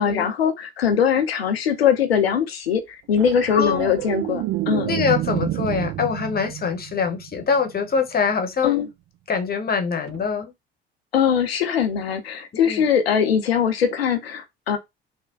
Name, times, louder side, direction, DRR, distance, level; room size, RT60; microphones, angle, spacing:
voice 1, 0.0-4.9 8.6-8.9 11.1-14.8, left 7 dB, 85° left, 0.5 m, -21 dB
sound 1, 3.2-7.7 10.1-10.3, right 15 dB, 50° right, 0.4 m, -29 dB
voice 2, 3.5-3.9 4.8-8.8 9.3-10.5 12.5-12.8, left 6 dB, 30° left, 0.9 m, -24 dB
3.3 x 2.2 x 3.7 m
figure-of-eight pair, 55°, 29 cm